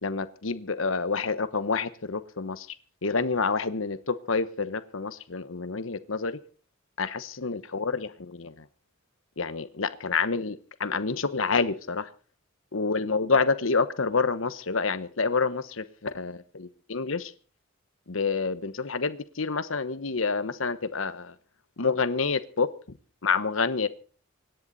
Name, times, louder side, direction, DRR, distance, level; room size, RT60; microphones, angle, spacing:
voice 1, 0.0-2.7 3.0-6.4 7.0-8.6 9.4-12.1 12.7-17.3 18.1-21.3 21.8-22.7 23.2-23.9, left 4 dB, 75° left, 13 dB, 1.1 m, -28 dB
25.5 x 10.5 x 4.1 m, 0.39 s
head